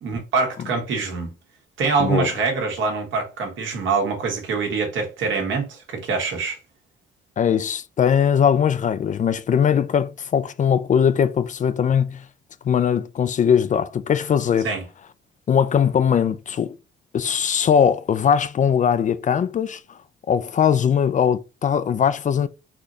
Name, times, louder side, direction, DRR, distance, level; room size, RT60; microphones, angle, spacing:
voice 1, 0.0-1.3 1.8-6.6 14.6-14.8, right 4 dB, 75° right, 1.5 m, -24 dB
voice 2, 7.4-12.2 12.6-14.7 15.5-16.7 17.1-19.8 20.3-22.5, left 8 dB, 40° left, 0.4 m, -20 dB
4.1 x 2.7 x 3.0 m
cardioid pair, 90°, 20 cm